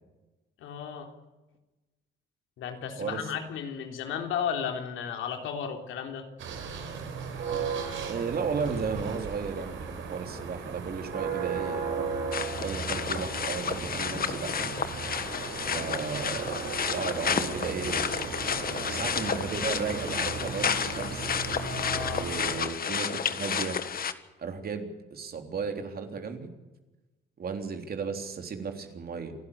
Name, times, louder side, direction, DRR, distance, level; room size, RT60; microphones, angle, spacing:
voice 1, 0.6-1.1 2.6-6.3 21.5-22.3, left 8 dB, 85° left, 4 dB, 3.6 m, -34 dB
voice 2, 3.0-3.3 8.0-12.2 12.6-14.7 15.7-18.1 18.8-21.3 22.1-23.8 24.4-26.5 27.4-29.4, right 5 dB, 50° right, 5 dB, 3.6 m, -34 dB
sound 1, 6.4-22.6, right 5 dB, 75° right, 4.8 m, -36 dB
sound 2, 12.3-24.1, left 7 dB, 50° left, 1.5 m, -31 dB
28.0 x 12.0 x 9.9 m, 1.1 s
cardioid pair, 90°, 20 cm